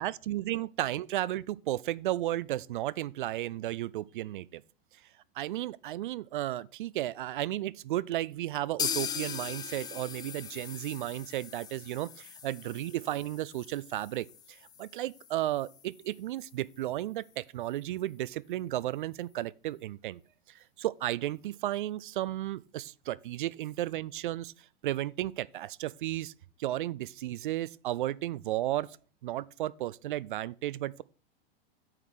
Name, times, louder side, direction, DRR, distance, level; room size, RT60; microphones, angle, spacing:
voice 1, 0.0-4.6 5.4-20.2 20.5-24.5 24.8-26.3 26.6-28.9 29.2-31.0, right 14 dB, 60° right, 0.4 m, -34 dB
sound 1, 8.8-16.5 16.8-16.9 17.2-17.3 17.8-17.9, left 7 dB, 15° left, 0.5 m, -40 dB
9.0 x 3.8 x 6.3 m
figure-of-eight pair, 90°, 29 cm